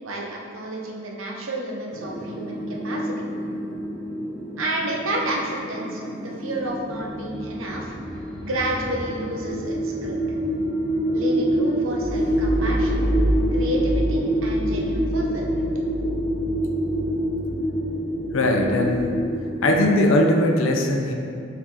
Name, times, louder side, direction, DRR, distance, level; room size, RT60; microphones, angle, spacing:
voice 1, 0.0-3.2 4.6-7.9 8.4-10.4 11.1-13.0 13.5-15.7, right 1 dB, 75° right, -1 dB, 0.7 m, -30 dB
sound 1, 1.9-19.8, equal, 25° left, 1.0 m, -26 dB
voice 2, 18.3-19.1 19.6-21.1, left 1 dB, 70° left, 2 dB, 0.5 m, -19 dB
4.3 x 2.8 x 4.5 m, 2.5 s
head